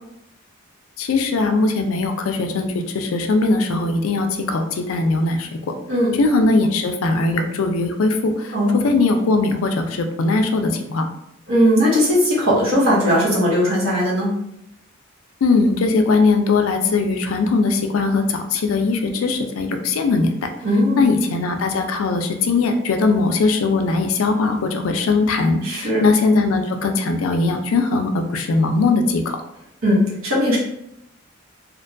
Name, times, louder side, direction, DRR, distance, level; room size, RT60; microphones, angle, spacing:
voice 1, 1.0-5.6 6.2-11.0 15.4-20.3 21.0-29.4, left 3 dB, 80° left, 6 dB, 0.4 m, -20 dB
voice 2, 5.9-6.2 8.5-8.9 11.5-14.3 20.6-21.1 25.6-26.1 29.8-30.6, equal, 80° right, -6 dB, 1.0 m, -18 dB
2.5 x 2.2 x 2.5 m, 0.79 s
head